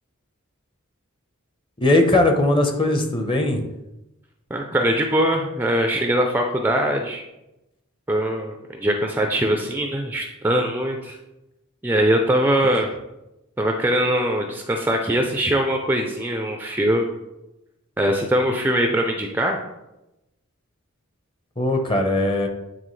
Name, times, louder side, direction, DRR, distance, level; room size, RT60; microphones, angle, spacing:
voice 1, 1.8-3.6 21.6-22.5, left 2 dB, 25° left, 5 dB, 0.8 m, -19 dB
voice 2, 4.5-7.2 8.1-11.2 11.8-12.9 13.6-17.1 18.0-19.6, right 1 dB, 10° right, 3 dB, 0.4 m, -22 dB
8.9 x 3.6 x 3.2 m, 0.93 s
head